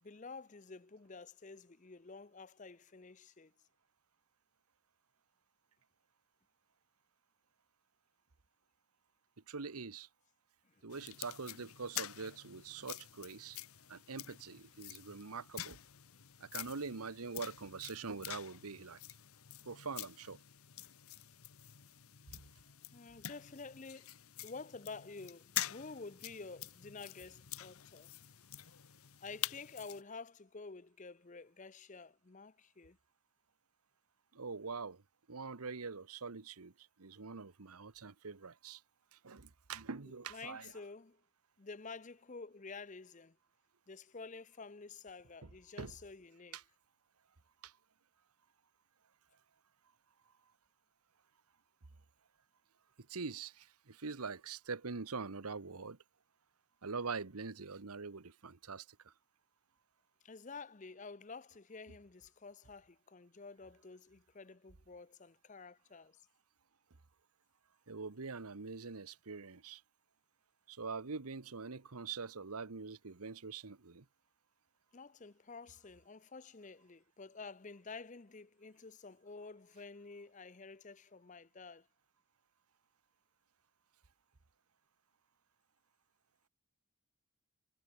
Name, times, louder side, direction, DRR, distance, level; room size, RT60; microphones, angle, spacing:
voice 1, 0.0-3.5 10.6-10.8 22.9-24.1 24.4-28.1 29.2-33.0 40.3-41.2 41.6-43.4 43.9-46.6 60.2-66.2 74.9-81.9, left 4 dB, 35° left, 0.6 m, -50 dB
voice 2, 9.5-10.1 10.8-13.6 13.9-15.8 16.4-19.0 19.6-20.4 34.3-35.0 35.3-38.8 39.1-40.7 45.4-45.5 45.8-45.9 46.5-46.6 47.6-47.8 53.0-56.0 56.8-59.1 67.9-69.8 70.7-74.1, right 4 dB, 90° right, 1.1 m, -44 dB
sound 1, 10.9-30.0, left 13 dB, 80° left, 1.0 m, -47 dB
head